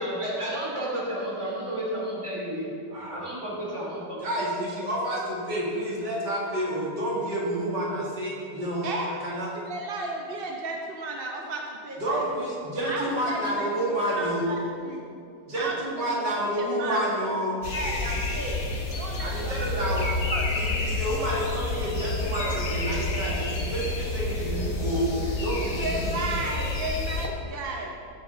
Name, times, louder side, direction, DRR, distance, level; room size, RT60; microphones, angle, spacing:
voice 1, 0.0-2.7 3.1-4.3 26.5-26.6, right 1 dB, 15° right, -5 dB, 3.0 m, -32 dB
voice 2, 4.2-8.9 9.2-9.5 12.0-14.6 15.5-17.6 19.2-20.1 20.6-25.1 25.4-26.2, right 1 dB, 80° right, -4 dB, 2.8 m, -29 dB
voice 3, 9.5-12.2 12.9-15.0 15.6-16.2 16.5-17.1 17.7-18.6 19.0-19.9 20.3-20.6 25.5-27.9, right 2 dB, 40° right, 0 dB, 0.9 m, -34 dB
sound 1, 17.6-27.3, left 2 dB, 55° left, 1.7 m, -29 dB
19.0 x 7.5 x 3.9 m, 2.6 s
omnidirectional pair, 1.8 m